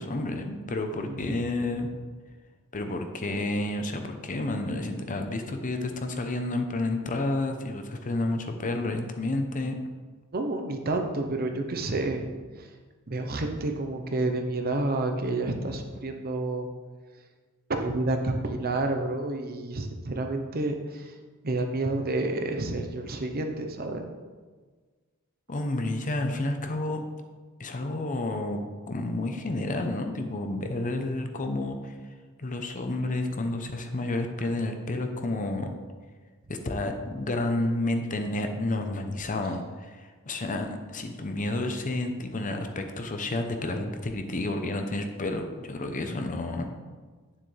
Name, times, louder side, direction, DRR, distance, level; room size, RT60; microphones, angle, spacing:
voice 1, 0.0-1.9 2.7-9.8 25.5-27.0 27.6-28.6 28.9-32.0 32.4-35.7 36.5-46.7, left 2 dB, 35° left, 5 dB, 0.7 m, -30 dB
voice 2, 1.0-1.4 10.3-12.3 12.6-12.7 13.1-16.7 17.7-21.1 21.4-24.0, right 2 dB, 45° right, 5 dB, 0.8 m, -29 dB
9.4 x 7.2 x 3.3 m, 1.4 s
head